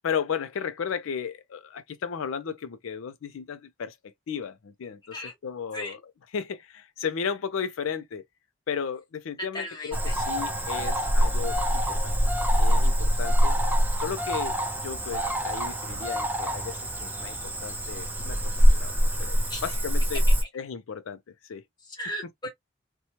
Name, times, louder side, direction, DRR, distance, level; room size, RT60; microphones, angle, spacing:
voice 1, 0.0-3.9 4.3-6.0 6.3-8.2 8.7-11.6 11.9-12.1 12.6-13.6 14.0-14.6 14.8-18.4 18.7-18.9 19.2-19.4 19.6-20.2 20.5-21.2 21.5-21.6, left 7 dB, 80° left, 0.4 m, -34 dB
voice 2, 9.4-10.1 19.5-19.7 21.8-22.5, equal, 20° left, 0.9 m, -36 dB
Cricket / Frog, 9.9-20.4, equal, 10° right, 0.3 m, -24 dB
2.7 x 2.2 x 2.9 m
head